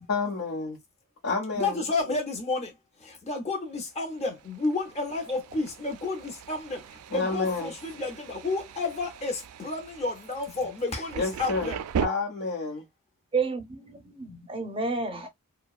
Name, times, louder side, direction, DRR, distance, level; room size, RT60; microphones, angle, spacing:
voice 1, 0.1-0.8 1.2-1.8 7.1-7.7 11.2-11.7 12.0-12.8, left 3 dB, 70° left, 0.8 m, -29 dB
voice 2, 1.5-2.7 3.0-11.8, left 3 dB, 30° left, 0.6 m, -31 dB
Thunder, 3.9-12.1, right 7 dB, 90° right, 0.3 m, -39 dB
voice 3, 13.3-15.3, right 4 dB, 25° right, 0.5 m, -30 dB
2.7 x 2.1 x 2.3 m
head